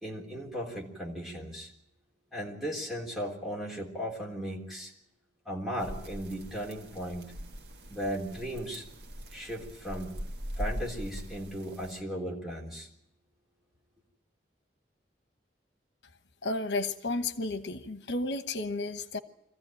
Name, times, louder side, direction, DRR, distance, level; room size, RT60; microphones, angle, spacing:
voice 1, 0.0-1.7 2.3-4.9 5.5-7.4 7.9-8.9 9.3-10.2 10.6-12.9, equal, ahead, -3 dB, 3.6 m, -36 dB
sound 1, 5.8-12.0, equal, 75° right, 1.6 m, -41 dB
voice 2, 16.4-19.2, left 2 dB, 85° left, 10 dB, 1.1 m, -32 dB
24.5 x 15.0 x 9.0 m, 0.84 s
head